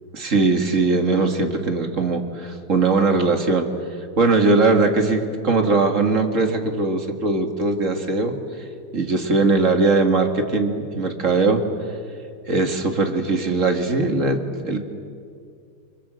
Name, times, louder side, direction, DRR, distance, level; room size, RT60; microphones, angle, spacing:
voice 1, 0.1-3.7 4.2-8.4 8.9-11.6 12.5-14.4 14.6-14.8, right 3 dB, 35° right, 5 dB, 2.3 m, -20 dB
30.0 x 24.0 x 7.8 m, 2.3 s
omnidirectional pair, 2.4 m